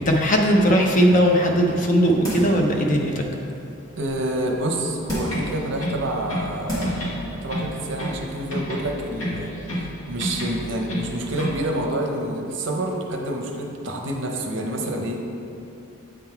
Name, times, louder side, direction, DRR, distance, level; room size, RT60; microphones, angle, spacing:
voice 1, 0.0-3.2, equal, 35° left, 1 dB, 0.6 m, -18 dB
sound 1, 2.2-2.7 3.2-3.3 5.1-5.5 6.2-6.3 6.7-7.1 7.5-7.6, equal, 20° left, 1.4 m, -28 dB
voice 2, 4.0-15.2, right 1 dB, 55° right, 1 dB, 0.7 m, -28 dB
sound 2, 5.3-6.5 6.8-8.2 8.5-9.9 10.2-11.6, equal, 75° left, 1.4 m, -30 dB
8.0 x 3.8 x 4.5 m, 2.7 s
head